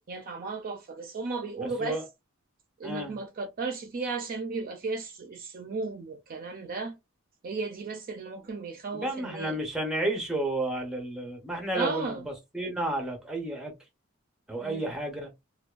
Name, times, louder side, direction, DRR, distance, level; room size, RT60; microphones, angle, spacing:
voice 1, 0.1-2.0 2.8-7.0 7.4-9.6 11.7-12.3 14.6-14.9, right 3 dB, 45° right, 0.4 m, -35 dB
voice 2, 1.6-2.0 2.8-3.2 8.9-13.7 14.5-15.3, right 1 dB, 5° right, 0.6 m, -32 dB
2.5 x 2.2 x 2.3 m
head